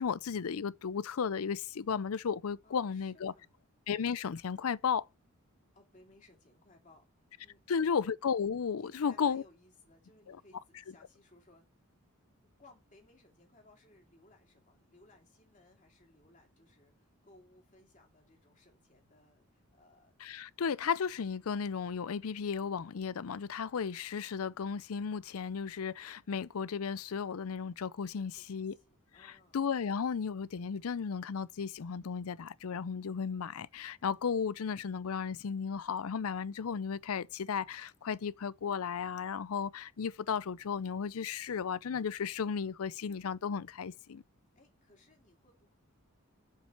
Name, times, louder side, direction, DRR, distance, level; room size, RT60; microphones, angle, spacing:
voice 1, 0.0-3.3 3.9-5.1 7.7-9.4 10.3-10.4 20.2-28.7 29.2-44.2, left 6 dB, 75° left, 0.5 m, -34 dB
voice 2, 2.6-3.6 5.7-7.9 8.8-11.7 12.6-20.1 28.1-29.7 44.5-45.8, left 2 dB, 35° left, 2.8 m, -63 dB
7.5 x 5.6 x 7.1 m
head